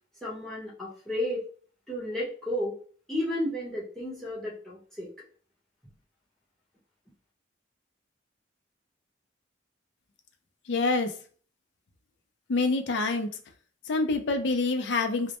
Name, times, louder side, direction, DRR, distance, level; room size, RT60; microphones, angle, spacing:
voice 1, 0.2-1.4 1.9-2.7 3.1-5.1, left 1 dB, 5° left, -8 dB, 0.8 m, -32 dB
voice 2, 10.7-11.1 12.5-13.3 13.9-15.4, left 3 dB, 65° left, 5 dB, 0.4 m, -26 dB
2.1 x 2.0 x 2.8 m, 0.42 s
head